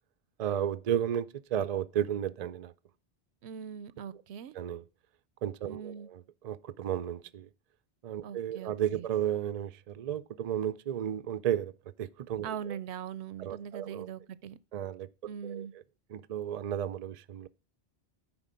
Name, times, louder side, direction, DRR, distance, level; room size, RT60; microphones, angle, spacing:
voice 1, 0.4-2.7 4.5-4.8 5.4-7.5 8.0-11.7 12.0-12.8 13.4-14.1 14.7-15.1 15.4-15.7 16.1-17.5, right 10 dB, 50° right, 0.5 m, -33 dB
voice 2, 3.4-4.5 5.6-6.1 8.2-9.1 12.4-14.6 15.3-15.7, right 8 dB, 80° right, 0.9 m, -41 dB
9.8 x 4.3 x 5.1 m
omnidirectional pair, 1.1 m